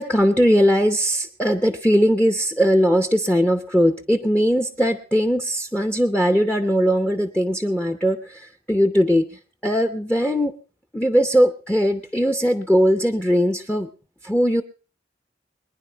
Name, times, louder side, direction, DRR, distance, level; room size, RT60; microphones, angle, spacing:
voice 1, 0.0-9.3 9.6-10.5 10.9-13.9 14.2-14.6, equal, 5° left, 9 dB, 0.7 m, -20 dB
23.5 x 10.5 x 4.5 m, 0.37 s
head